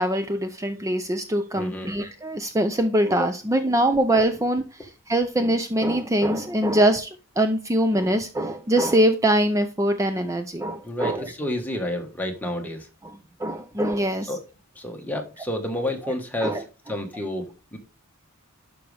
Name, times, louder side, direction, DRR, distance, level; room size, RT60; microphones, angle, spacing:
voice 1, 0.0-7.1 7.4-11.3 13.0-14.4 16.0-16.1 16.4-16.6, right 1 dB, 15° right, 0.5 m, -23 dB
voice 2, 1.5-1.9 10.8-12.9 14.3-14.4 14.8-17.8, left 1 dB, 10° left, 1.4 m, -30 dB
11.5 x 5.3 x 3.4 m
head